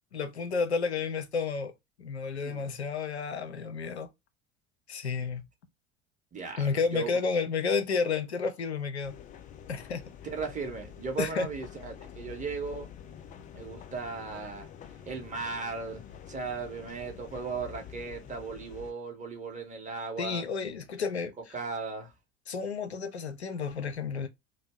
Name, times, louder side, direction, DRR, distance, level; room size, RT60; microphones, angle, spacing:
voice 1, 0.1-1.7 2.0-4.1 4.9-5.5 6.6-9.2 9.7-10.0 11.2-11.5 20.2-21.5 22.5-24.3, left 5 dB, 85° left, 0.5 m, -31 dB
voice 2, 6.3-7.2 10.2-12.9 13.5-14.7 15.0-20.4 21.5-22.1, right 4 dB, 25° right, 0.9 m, -37 dB
sound 1, 9.0-18.9, left 9 dB, 25° left, 0.4 m, -47 dB
2.6 x 2.1 x 3.3 m
figure-of-eight pair, 65°, 32 cm